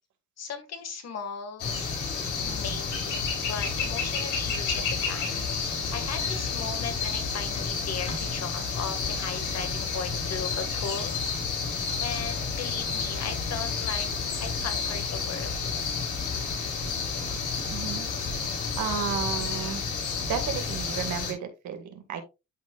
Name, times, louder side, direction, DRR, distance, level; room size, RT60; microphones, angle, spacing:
voice 1, 0.4-1.8 2.4-5.4 5.9-11.2 12.0-14.1 14.4-15.5, left 6 dB, 60° left, 8 dB, 1.9 m, -37 dB
sound 1, 1.6-21.3, left 5 dB, 85° left, 3.3 m, -30 dB
voice 2, 17.7-18.1 18.8-19.8 20.3-22.2, right 8 dB, 75° right, 6 dB, 2.0 m, -32 dB
12.5 x 4.2 x 2.4 m, 0.26 s
cardioid pair, 90°, 30 cm